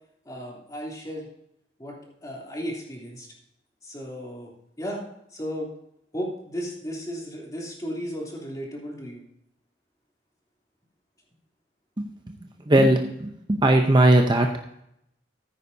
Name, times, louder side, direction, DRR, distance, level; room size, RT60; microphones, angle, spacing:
voice 1, 0.2-1.3 1.8-3.3 3.8-4.5 4.8-5.0 5.3-5.7 6.1-9.2, equal, 20° left, -3 dB, 3.0 m, -34 dB
voice 2, 12.7-14.5, right 1 dB, 25° right, 3 dB, 0.7 m, -18 dB
14.0 x 9.9 x 2.7 m, 0.76 s
head